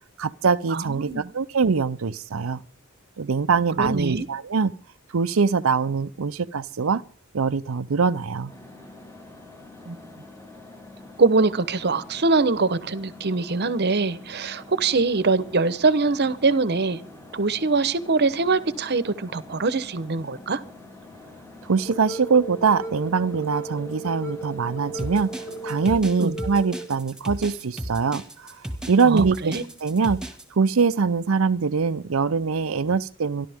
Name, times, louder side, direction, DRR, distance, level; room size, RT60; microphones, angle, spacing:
voice 1, 0.2-2.6 3.2-4.7 5.1-7.0 7.3-8.5 21.6-25.3 25.6-28.6 28.9-30.2 30.5-33.5, right 5 dB, 80° right, 14 dB, 0.6 m, -23 dB
voice 2, 0.7-1.3 3.8-4.3 9.8-10.0 11.2-17.0 17.3-20.6 26.2-26.4 29.0-29.6, right 3 dB, 50° right, 15 dB, 0.9 m, -23 dB
sound 1, 8.4-25.9, left 2 dB, 15° left, 2.0 m, -46 dB
sound 2, 21.9-26.9, right 2 dB, 85° left, 3.7 m, -35 dB
sound 3, 25.0-30.4, right 1 dB, 5° right, 1.9 m, -34 dB
26.5 x 12.0 x 3.6 m, 0.40 s
head